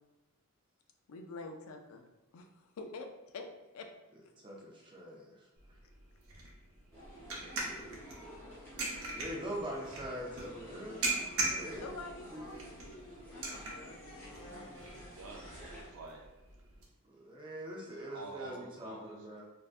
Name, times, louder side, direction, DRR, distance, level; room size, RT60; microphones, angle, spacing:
voice 1, 1.1-2.0 2.3-3.1 3.3-3.5 3.7-3.9 4.2-4.3 8.6-9.1 11.7-14.8, left 3 dB, 65° left, 5 dB, 0.4 m, -48 dB
voice 2, 4.4-5.5 9.1-12.0 12.3-12.4 17.0-19.4, equal, 20° right, -2 dB, 0.4 m, -43 dB
sound 1, 5.6-16.9, right 3 dB, 70° right, 0.8 m, -41 dB
sound 2, 6.9-15.9, equal, 10° left, 0.8 m, -50 dB
voice 3, 14.8-16.2 17.8-19.3, right 3 dB, 90° right, -1 dB, 0.4 m, -49 dB
3.3 x 2.6 x 2.4 m, 1.1 s
head